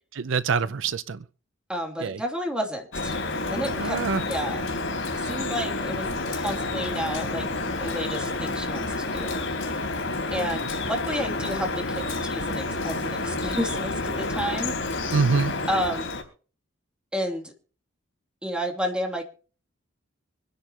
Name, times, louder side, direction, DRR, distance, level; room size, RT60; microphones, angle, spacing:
voice 1, 0.1-1.2 2.0-2.2 3.8-4.2 15.1-15.5, right 5 dB, 70° right, 0.6 m, -25 dB
voice 2, 1.7-3.1 3.4-4.6 5.1-6.1 6.3-7.5 7.8-9.7 10.3-14.7 15.7-16.1 17.1-17.5 18.4-19.3, equal, 5° right, 2.8 m, -31 dB
Drip, 2.9-16.2, left 2 dB, 75° left, 3.7 m, -29 dB
25.0 x 10.5 x 2.9 m
head